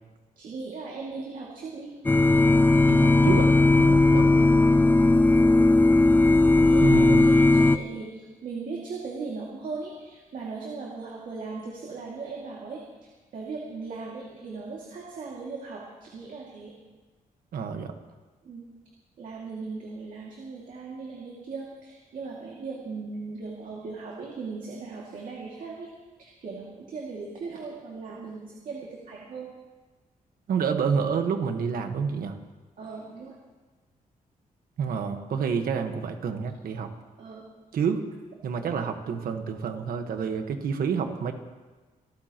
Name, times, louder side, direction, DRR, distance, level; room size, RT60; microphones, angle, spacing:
voice 1, 0.4-1.9 4.2-4.5 6.5-12.8 13.3-16.7 18.4-18.7 19.2-25.9 26.2-29.5 32.8-33.4 37.2-37.4, right 4 dB, 65° right, -3 dB, 2.3 m, -38 dB
sound 1, 2.1-7.8, left 2 dB, 10° left, 0.4 m, -18 dB
voice 2, 2.9-4.3 6.8-7.3 17.5-17.9 30.5-32.3 34.8-36.9 37.7-38.0 38.4-41.3, right 6 dB, 90° right, 6 dB, 1.4 m, -28 dB
25.0 x 14.5 x 3.0 m, 1.3 s
wide cardioid pair, 150°, 15 cm